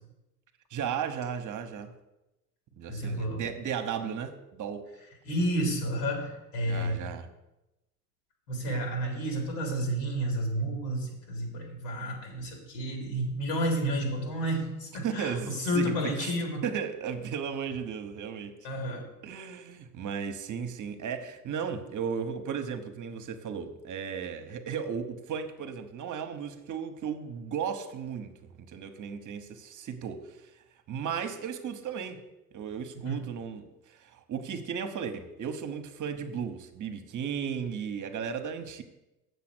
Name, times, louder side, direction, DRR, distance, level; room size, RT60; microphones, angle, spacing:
voice 1, 0.7-1.9 2.8-4.9 6.7-7.3 15.0-16.3 16.6-18.6 19.2-28.3 28.7-30.4 30.9-32.2 32.5-38.8, right 7 dB, 40° right, 8 dB, 1.2 m, -35 dB
voice 2, 2.9-3.4 5.2-7.0 8.5-16.6 18.6-19.0 33.0-33.2, right 1 dB, 75° left, 1 dB, 3.3 m, -31 dB
7.6 x 7.0 x 6.2 m, 0.95 s
supercardioid pair, 90°, 45 cm